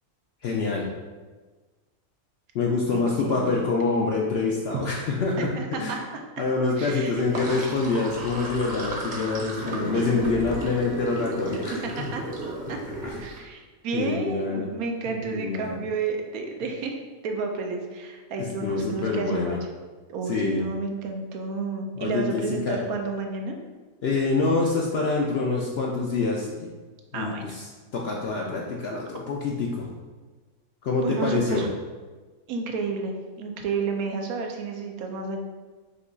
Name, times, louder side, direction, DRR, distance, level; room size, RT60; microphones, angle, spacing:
voice 1, 0.4-0.9 2.5-5.5 5.8-6.0 6.4-12.1 13.0-13.2 13.9-14.7 15.1-15.8 18.4-19.6 20.3-20.7 22.0-22.8 24.0-26.7 27.1-27.7 27.9-29.9 30.8-31.7, left 3 dB, 70° left, -1 dB, 0.6 m, -26 dB
voice 2, 2.9-3.7 5.4-6.2 6.8-7.6 12.0-12.2 12.7-12.8 13.2-17.0 17.2-19.6 20.1-23.6 27.1-27.4 30.9-31.7 32.5-35.4, right 4 dB, 85° right, 3 dB, 1.1 m, -31 dB
Sink (filling or washing), 7.1-13.4, right 2 dB, 40° right, 0.8 m, -34 dB
5.2 x 2.3 x 3.9 m, 1.3 s
omnidirectional pair, 1.5 m